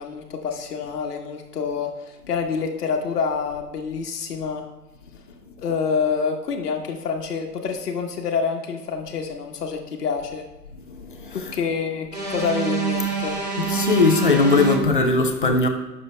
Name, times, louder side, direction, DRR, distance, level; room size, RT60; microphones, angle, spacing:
voice 1, 0.0-4.6 5.6-10.5 11.5-13.4, left 5 dB, 65° left, 1.3 m, -27 dB
voice 2, 10.7-11.5 13.6-15.7, left 3 dB, 30° left, 0.6 m, -20 dB
sound 1, 12.1-14.8, right 5 dB, 25° right, 0.6 m, -26 dB
18.0 x 6.8 x 2.2 m
hypercardioid pair, 175°, 50 cm